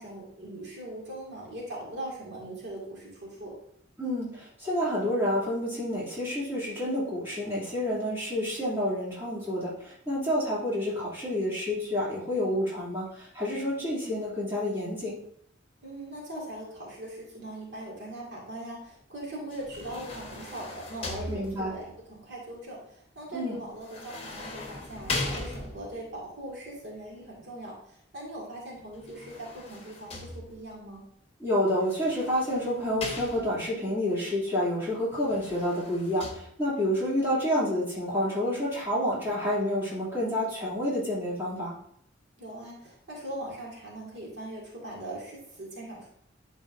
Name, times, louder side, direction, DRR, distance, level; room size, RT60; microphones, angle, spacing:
voice 1, 0.0-3.5 15.8-31.0 42.4-46.1, right 1 dB, 65° right, -4 dB, 2.0 m, -40 dB
voice 2, 4.0-15.1 21.3-21.7 23.3-23.6 31.4-41.7, left 1 dB, 10° right, -9 dB, 2.7 m, -29 dB
sound 1, 19.5-21.9 23.8-26.1 28.9-30.8 31.8-33.8 35.1-36.3, left 2 dB, 30° left, 1.2 m, -39 dB
11.0 x 4.0 x 2.6 m, 0.67 s
head